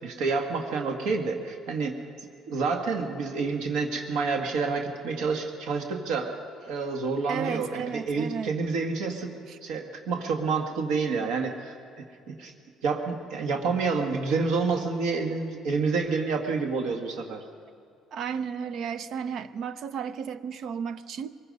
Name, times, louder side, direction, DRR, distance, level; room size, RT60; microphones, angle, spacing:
voice 1, 0.0-1.9 2.5-6.4 6.7-9.3 9.6-11.7 12.3-12.5 12.8-17.4, right 4 dB, 85° right, 3 dB, 1.7 m, -28 dB
voice 2, 7.3-8.5 9.5-9.6 18.1-21.3, right 7 dB, 50° right, 13 dB, 0.6 m, -33 dB
23.0 x 20.5 x 5.4 m, 2.3 s
cardioid pair, 165°, 0 cm